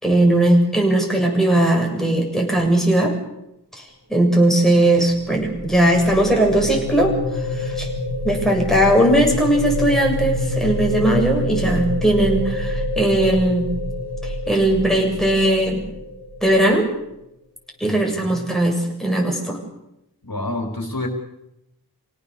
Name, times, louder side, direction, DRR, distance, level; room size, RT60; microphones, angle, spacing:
voice 1, 0.0-3.1 3.8-3.9 4.1-7.9 8.2-13.7 14.2-15.8 16.4-16.9 17.8-19.6, right 1 dB, ahead, 0 dB, 7.2 m, -18 dB
sound 1, 4.8-16.9, left 1 dB, 75° right, 2.4 m, -27 dB
voice 2, 17.9-18.4 20.2-21.1, left 2 dB, 55° left, 2 dB, 3.9 m, -28 dB
26.5 x 17.5 x 6.9 m, 0.86 s
wide cardioid pair, 40°, 39 cm